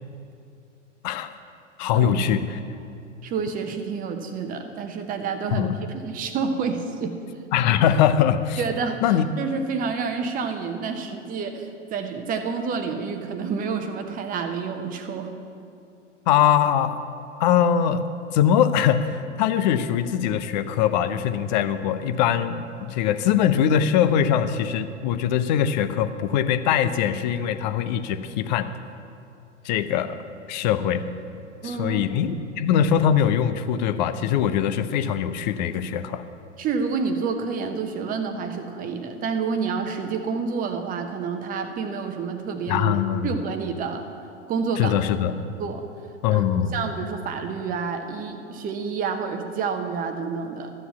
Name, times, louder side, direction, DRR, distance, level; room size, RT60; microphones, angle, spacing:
voice 1, 1.8-2.6 5.5-5.8 7.5-8.6 9.0-9.3 16.3-17.0 17.4-28.7 29.6-30.2 30.5-31.0 31.6-36.2 42.7-43.3 44.8-45.3 46.2-46.8, left 9 dB, 40° left, 11 dB, 0.6 m, -22 dB
voice 2, 3.2-7.2 8.6-15.3 31.6-32.0 36.6-43.0 43.2-44.1 44.5-45.0 45.6-45.8 46.3-46.4 46.7-50.7, right 5 dB, 20° right, 6 dB, 0.9 m, -29 dB
13.5 x 7.0 x 7.3 m, 2.6 s
figure-of-eight pair, 95°, 37 cm